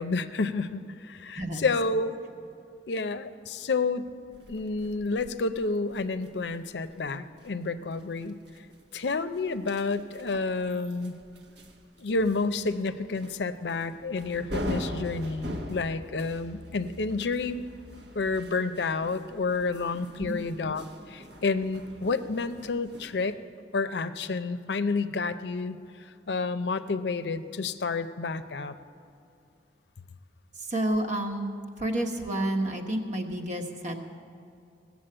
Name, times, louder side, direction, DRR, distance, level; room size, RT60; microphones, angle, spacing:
voice 1, 0.0-2.2 2.9-4.1 4.5-8.4 8.9-11.2 12.0-17.6 18.1-23.4 23.7-25.8 26.3-28.7, left 3 dB, 75° left, 11 dB, 0.6 m, -30 dB
voice 2, 1.4-1.7 20.2-20.4 30.6-31.5 31.8-34.1, right 1 dB, 45° right, 3 dB, 1.3 m, -30 dB
sound 1, 4.3-23.3, equal, 65° right, 1.1 m, -43 dB
17.0 x 7.2 x 8.8 m, 2.5 s
head